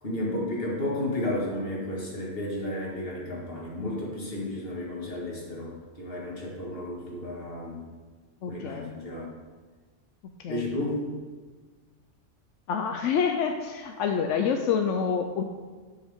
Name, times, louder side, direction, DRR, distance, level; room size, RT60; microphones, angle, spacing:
voice 1, 0.0-7.8 8.5-9.3 10.5-11.0, left 1 dB, 50° left, -3 dB, 2.1 m, -32 dB
voice 2, 8.4-8.9 10.4-10.7 12.7-15.4, left 6 dB, 85° left, 5 dB, 0.9 m, -27 dB
11.5 x 6.2 x 3.6 m, 1.4 s
omnidirectional pair, 1.3 m